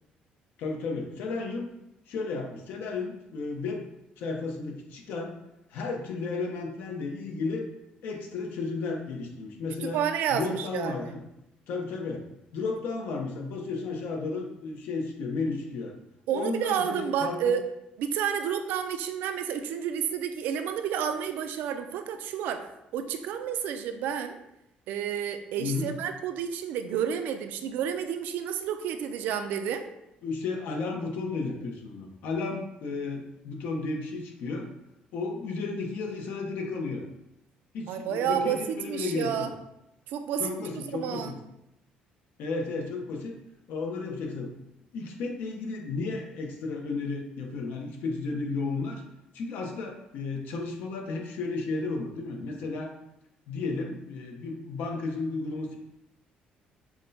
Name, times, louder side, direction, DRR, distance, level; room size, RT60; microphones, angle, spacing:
voice 1, 0.6-1.7 2.1-3.8 4.2-5.4 5.7-7.7 8.0-10.0 10.3-11.2 11.7-12.2 12.5-15.9 16.3-17.5 25.6-25.9 30.2-34.7 35.1-37.0 37.7-39.5 40.4-41.3 42.4-43.3 43.7-44.5 44.9-49.0 49.3-52.9 53.5-55.8, left 3 dB, 75° left, 2 dB, 0.7 m, -33 dB
voice 2, 9.8-11.1 16.3-17.6 18.0-24.4 24.9-29.8 37.9-38.6 38.9-39.5 40.1-41.4, right 8 dB, 80° right, 8 dB, 0.3 m, -30 dB
5.7 x 2.1 x 2.7 m, 0.86 s
cardioid pair, 150°, 3 cm